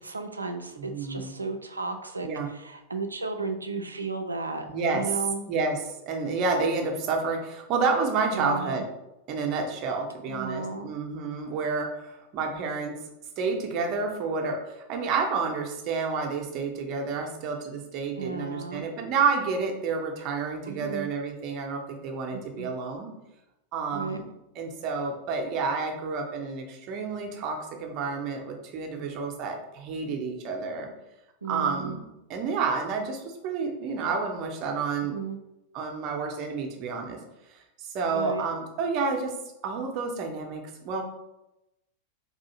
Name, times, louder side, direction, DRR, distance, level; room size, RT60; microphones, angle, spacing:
voice 1, 0.0-4.7 4.9-5.4 8.3-8.8 10.3-10.9 18.2-18.8 20.7-21.1 22.3-22.7 23.9-24.2 31.4-32.0 35.1-35.4 38.1-38.5, right 4 dB, 80° right, 6 dB, 0.4 m, -34 dB
voice 2, 0.8-1.3 2.2-2.5 4.7-5.0 5.5-5.8 6.1-8.9 9.3-13.0 13.4-23.1 23.7-24.2 24.6-30.9 31.5-32.0 32.3-35.1 35.7-37.2 37.5-39.3 39.6-41.0, right 4 dB, 40° right, 2 dB, 0.7 m, -29 dB
4.2 x 2.7 x 2.8 m, 0.91 s
figure-of-eight pair, 90°, 0 cm